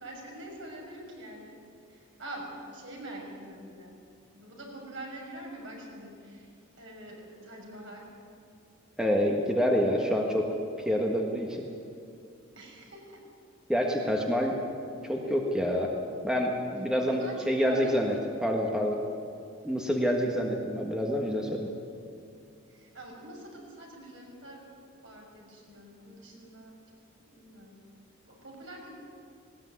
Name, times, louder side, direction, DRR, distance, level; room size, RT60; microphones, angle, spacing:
voice 1, 0.0-1.6 1.9-3.9 4.3-6.5 6.7-8.1 12.6-13.2 16.7-18.2 22.7-26.7 27.2-27.8 28.2-28.9, right 1 dB, 60° right, 0 dB, 6.2 m, -45 dB
voice 2, 9.0-10.4 10.8-11.7 13.7-14.6 15.0-15.9 16.2-18.1 18.4-19.0 19.6-21.7, equal, 5° right, 0 dB, 1.6 m, -27 dB
19.5 x 18.5 x 9.7 m, 2.5 s
head